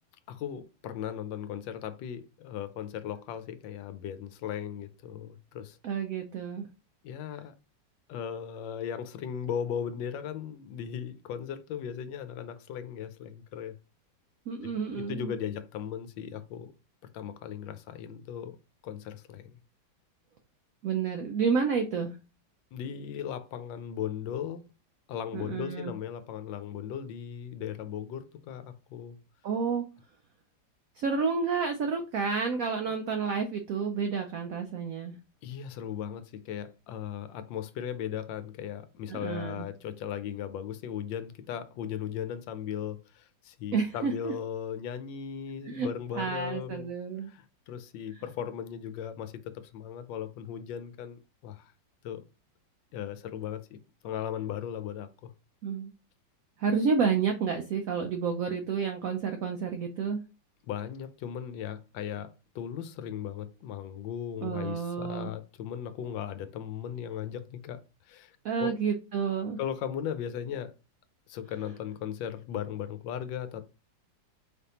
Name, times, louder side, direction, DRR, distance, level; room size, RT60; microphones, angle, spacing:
voice 1, 0.3-5.8 7.0-7.5 8.1-13.7 14.6-16.7 17.1-18.6 18.8-19.5 22.7-24.6 25.1-29.2 35.4-46.9 47.3-51.7 52.0-52.2 52.9-53.8 54.0-55.3 60.7-67.8 68.1-68.3 68.6-68.7 69.6-70.7 71.3-73.6, left 9 dB, 80° left, 1.2 m, -37 dB
voice 2, 5.8-6.7 14.5-15.3 20.8-22.1 25.3-25.9 29.4-29.9 31.0-35.1 39.1-39.7 43.7-44.3 45.7-47.3 48.1-48.2 55.6-55.9 56.6-60.2 64.4-65.3 68.4-69.6, right 5 dB, 85° right, 0.7 m, -30 dB
4.1 x 3.5 x 2.8 m
omnidirectional pair, 2.1 m